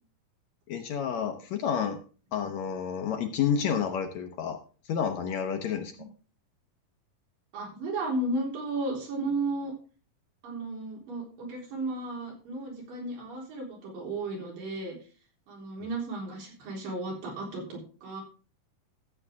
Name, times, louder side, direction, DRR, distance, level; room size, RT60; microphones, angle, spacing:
voice 1, 0.7-2.0 2.3-4.6 4.9-5.9, left 7 dB, 65° left, 5 dB, 2.0 m, -30 dB
voice 2, 7.5-9.7 10.4-15.0 15.5-18.2, right 2 dB, 80° right, -2 dB, 5.4 m, -34 dB
14.0 x 8.2 x 3.6 m, 0.38 s
omnidirectional pair, 3.9 m